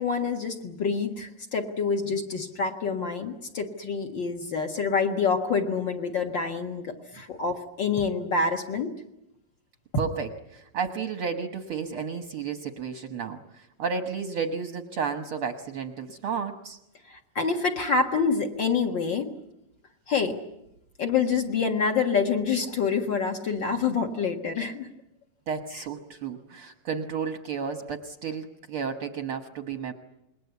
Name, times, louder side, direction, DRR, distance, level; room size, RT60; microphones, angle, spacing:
voice 1, 0.0-8.9 17.1-19.3 20.1-20.4 21.0-24.9, left 5 dB, 45° left, 4 dB, 1.6 m, -27 dB
voice 2, 10.0-16.8 25.5-29.9, right 6 dB, 60° right, 7 dB, 1.5 m, -32 dB
27.5 x 21.5 x 8.2 m, 0.86 s
omnidirectional pair, 4.1 m